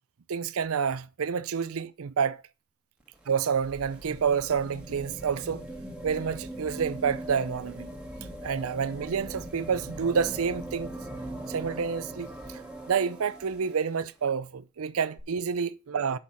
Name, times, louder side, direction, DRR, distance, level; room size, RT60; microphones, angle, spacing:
voice 1, 0.3-2.4 3.3-5.7 6.0-7.9 8.4-10.9 11.5-12.3 12.9-16.2, right 6 dB, 85° right, 0.5 m, -28 dB
sound 1, 3.0-14.0 15.2-15.3, right 1 dB, 5° right, 1.6 m, -41 dB
6.4 x 5.6 x 7.0 m
head